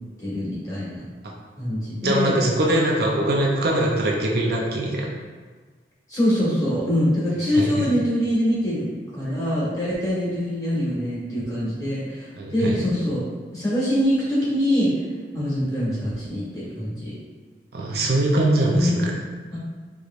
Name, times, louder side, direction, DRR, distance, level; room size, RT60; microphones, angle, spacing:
voice 1, 0.2-1.0 1.6-2.4 6.1-8.9 9.1-13.2 13.5-14.9 15.3-17.1 18.7-19.0 19.5-19.6, equal, 20° left, -8 dB, 1.4 m, -24 dB
voice 2, 2.0-5.1 7.5-7.9 12.3-12.8 17.7-19.1, right 1 dB, 60° right, -2 dB, 0.6 m, -22 dB
4.8 x 3.0 x 2.5 m, 1.5 s
head